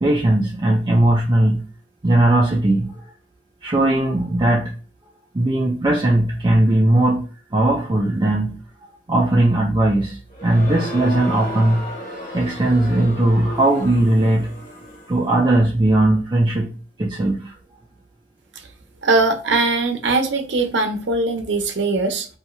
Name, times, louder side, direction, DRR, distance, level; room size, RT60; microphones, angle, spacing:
voice 1, 0.0-1.6 2.0-3.0 3.6-4.7 5.3-8.6 9.1-11.9 12.3-14.5 15.1-16.7 17.0-17.6, right 1 dB, 25° right, 0.4 m, -18 dB
Crowd, 10.3-15.3, equal, 45° left, 0.9 m, -34 dB
voice 2, 19.0-22.3, right 3 dB, 75° right, 0.7 m, -20 dB
2.7 x 2.3 x 3.0 m
head